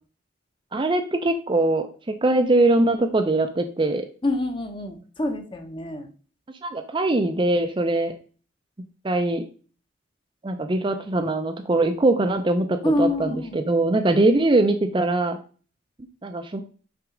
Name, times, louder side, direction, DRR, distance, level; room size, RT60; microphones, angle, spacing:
voice 1, 0.7-1.9 2.2-4.1 6.6-8.1 9.0-9.4 10.4-15.4 16.2-16.6, right 2 dB, 25° right, 7 dB, 0.4 m, -22 dB
voice 2, 4.2-6.1 12.8-13.6, left 1 dB, 25° left, 6 dB, 0.8 m, -26 dB
6.0 x 3.6 x 4.9 m, 0.39 s
head